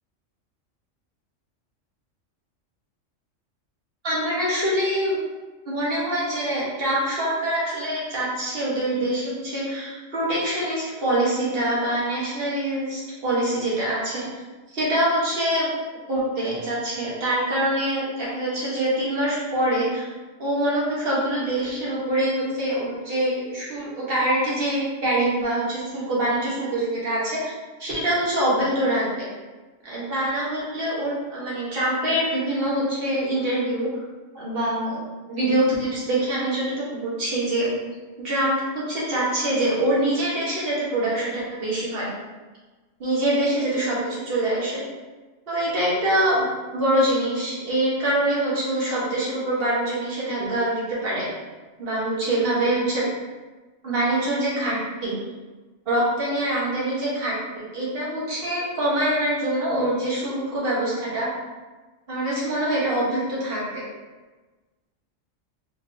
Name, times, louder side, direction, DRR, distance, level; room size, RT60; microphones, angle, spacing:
voice 1, 4.0-5.2 5.6-14.3 14.7-15.7 16.1-20.1 20.4-27.5 27.8-29.3 29.8-34.0 34.3-35.0 35.3-37.7 38.2-42.1 43.0-44.8 45.5-46.5 46.7-51.3 51.8-53.0 53.8-55.1 55.9-57.4 57.7-61.3 62.1-63.6, right 1 dB, 50° right, -7 dB, 1.3 m, -24 dB
3.8 x 2.7 x 2.6 m, 1.3 s
omnidirectional pair, 1.3 m